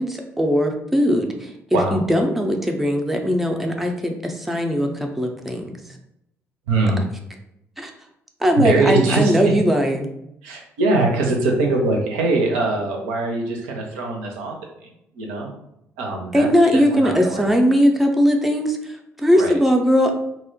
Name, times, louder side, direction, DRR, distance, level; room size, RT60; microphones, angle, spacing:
voice 1, 0.0-5.8 7.8-7.9 8.4-10.1 16.3-20.1, equal, 5° right, 2 dB, 0.4 m, -19 dB
voice 2, 6.7-7.0 8.6-9.5 10.4-14.9 15.2-15.5 16.0-17.5 19.3-19.5, right 3 dB, 70° right, 1 dB, 0.4 m, -22 dB
2.7 x 2.0 x 2.6 m, 0.80 s
figure-of-eight pair, 45°, 8 cm